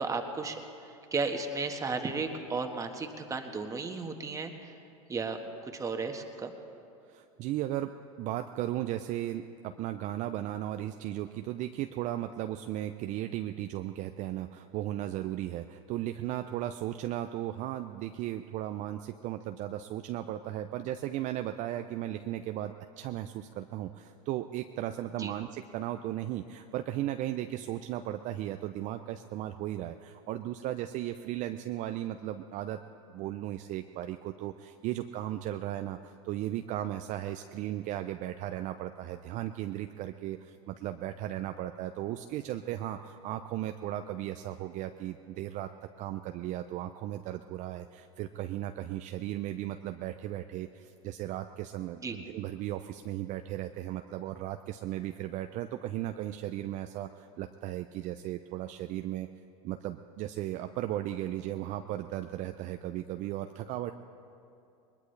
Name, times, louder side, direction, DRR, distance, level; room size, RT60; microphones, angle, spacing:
voice 1, 0.0-4.7 5.1-5.4 5.7-6.5 25.2-25.3 52.0-52.2, right 4 dB, 20° right, 4 dB, 1.5 m, -34 dB
voice 2, 7.1-32.8 33.1-45.7 46.0-59.3 59.6-63.9, right 13 dB, 45° right, 7 dB, 0.6 m, -36 dB
21.0 x 20.5 x 3.3 m, 2.6 s
hypercardioid pair, 105°, 17 cm